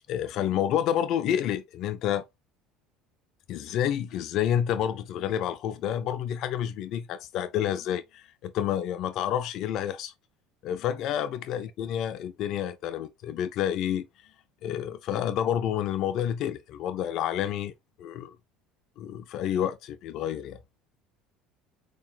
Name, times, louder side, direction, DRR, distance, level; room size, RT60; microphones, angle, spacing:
voice 1, 0.1-2.2 3.5-10.1 10.6-14.1 14.6-17.7 18.0-18.4 19.0-20.6, left 10 dB, 60° left, 0.4 m, -29 dB
5.5 x 2.9 x 2.3 m
hypercardioid pair, 80°, 0 cm